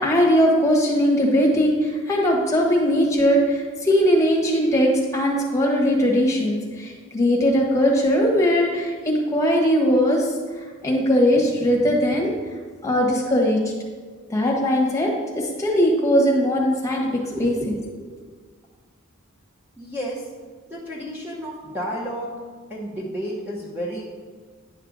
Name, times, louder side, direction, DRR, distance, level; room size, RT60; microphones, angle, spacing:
voice 1, 0.0-10.3 10.8-12.3 12.8-13.6 14.3-15.1 15.3-17.9, equal, 15° left, -2 dB, 1.3 m, -20 dB
voice 2, 19.8-20.2 20.7-22.3 22.7-24.0, equal, 10° right, -5 dB, 1.0 m, -31 dB
10.0 x 6.4 x 4.0 m, 1.5 s
head